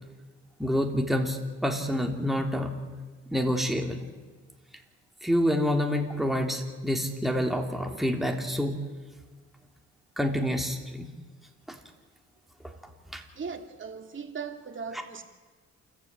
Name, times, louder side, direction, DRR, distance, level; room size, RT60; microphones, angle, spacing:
voice 1, 0.6-2.7 3.3-4.0 5.2-8.8 10.2-11.1 11.7-11.8 13.1-13.2, equal, ahead, 3.2 m, -27 dB
voice 2, 13.3-15.2, right 5 dB, 40° right, 2.8 m, -38 dB
28.5 x 14.5 x 8.9 m
cardioid pair, 90°, 30 cm